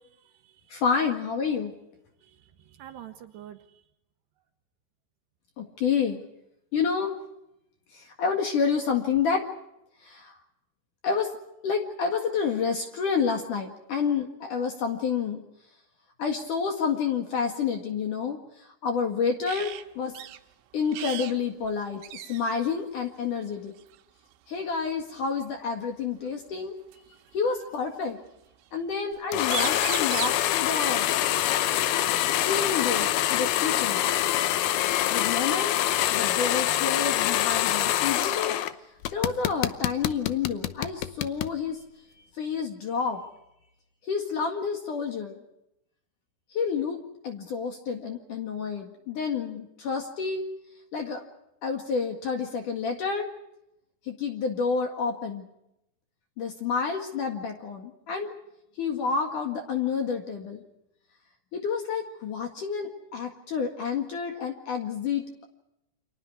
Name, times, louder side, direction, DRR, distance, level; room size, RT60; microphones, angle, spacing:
voice 1, 0.0-0.8 2.2-3.8, right 11 dB, 75° right, 6 dB, 2.7 m, -48 dB
voice 2, 0.7-1.7 5.6-6.2 6.7-7.1 7.9-9.5 10.0-10.3 11.0-11.3 11.6-15.4 16.2-18.4 18.8-20.1 20.7-23.7 24.5-26.8 27.3-28.2 28.7-31.1 32.4-34.1 35.1-35.7 36.1-38.6 39.1-41.8 42.4-43.2 44.1-45.4 46.5-50.4 50.9-51.2 51.6-53.3 54.1-55.5 56.4-58.3 58.8-60.6 61.5-65.4, left 6 dB, 55° left, 4 dB, 2.7 m, -29 dB
sound 1, 19.5-19.8 20.2-20.4 20.9-21.4 21.6-21.7 22.0-22.6 23.8-24.0 25.7-25.8 26.9-27.8 29.1-29.2 29.4-30.5 32.4-32.5 32.9-33.9, right 12 dB, 90° right, 3.7 m, -37 dB
sound 2, 29.3-38.7 39.0-41.5, left 13 dB, 80° left, 2.2 m, -25 dB
30.0 x 25.5 x 4.8 m, 0.86 s
omnidirectional pair, 5.7 m